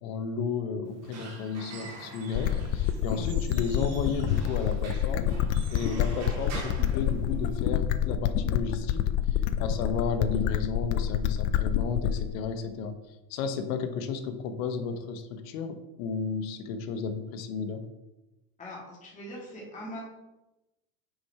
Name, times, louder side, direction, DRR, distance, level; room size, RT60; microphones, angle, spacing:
voice 1, 0.0-5.4 5.7-12.9 13.3-17.8, left 5 dB, 70° left, 8 dB, 1.1 m, -33 dB
Squeak / Wood, 0.8-7.8, right 2 dB, 40° right, 2.0 m, -44 dB
sound 1, 2.3-12.3, left 10 dB, 45° left, 0.5 m, -27 dB
voice 2, 18.6-20.0, equal, 20° left, -5 dB, 2.3 m, -41 dB
6.2 x 4.8 x 5.6 m, 1.0 s
supercardioid pair, 135°, 41 cm